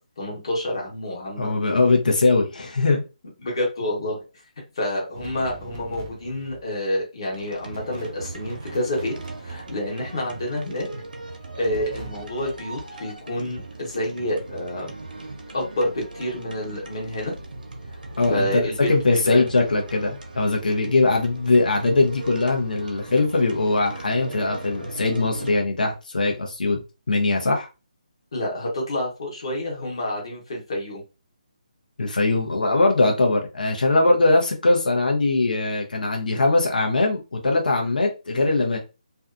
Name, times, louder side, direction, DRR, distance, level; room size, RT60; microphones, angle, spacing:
voice 1, 0.2-1.5 3.4-4.2 4.7-9.1 9.4-10.9 11.6-14.9 15.5-17.3 18.3-19.4 28.3-31.0, left 1 dB, 35° left, 1.0 m, -28 dB
voice 2, 1.4-3.0 18.2-26.8 27.1-27.7 32.0-38.8, left 2 dB, 80° left, 0.7 m, -21 dB
sound 1, 5.1-6.7 7.6-10.2 11.6-12.7, right 2 dB, 20° right, 0.4 m, -41 dB
sound 2, 7.3-25.6, right 2 dB, 85° right, 0.7 m, -39 dB
2.6 x 2.3 x 2.4 m
hypercardioid pair, 180°, 4 cm